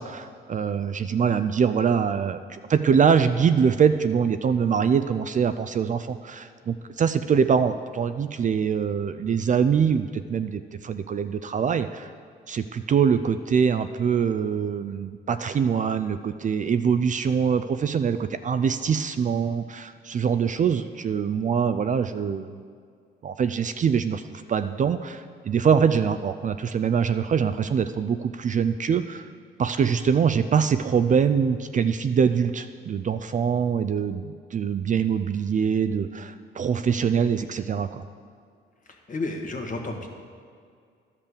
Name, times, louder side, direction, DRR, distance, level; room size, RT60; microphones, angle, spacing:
voice 1, 0.0-12.1 12.5-22.6 23.2-24.2 24.5-29.3 29.6-38.0, right 7 dB, 40° right, 10 dB, 0.4 m, -24 dB
voice 2, 38.9-40.1, left 2 dB, 40° left, 2 dB, 1.6 m, -32 dB
12.0 x 5.7 x 6.8 m, 2.2 s
cardioid pair, 90°, 20 cm